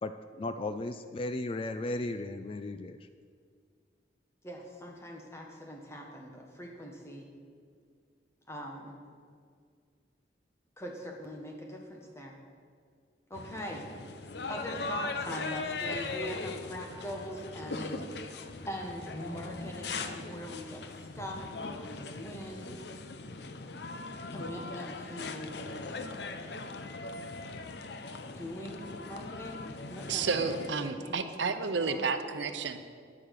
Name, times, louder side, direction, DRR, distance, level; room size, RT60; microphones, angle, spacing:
voice 1, 0.0-3.0, left 2 dB, 30° left, 10 dB, 0.4 m, -35 dB
voice 2, 4.4-7.3 8.5-9.0 10.8-12.3 13.3-13.9 14.5-18.0 18.7-20.8 21.1-22.8 24.3-25.6 28.2-30.5 30.8-32.1, equal, 15° left, 0 dB, 1.5 m, -42 dB
sound 1, 13.3-30.7, left 3 dB, 65° left, 0.7 m, -40 dB
voice 3, 30.1-32.9, right 5 dB, 90° right, 9 dB, 0.8 m, -31 dB
9.8 x 8.6 x 6.6 m, 2.1 s
head